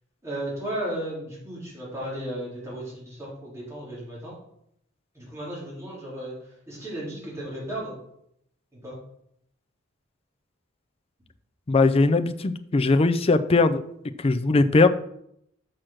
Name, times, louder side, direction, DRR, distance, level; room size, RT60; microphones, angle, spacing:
voice 1, 0.2-4.3 5.1-8.0 8.7-9.0, right 1 dB, 15° right, -7 dB, 3.3 m, -35 dB
voice 2, 11.7-13.8 14.2-14.9, left 3 dB, 25° left, 9 dB, 0.4 m, -20 dB
6.4 x 5.9 x 6.3 m, 0.73 s
head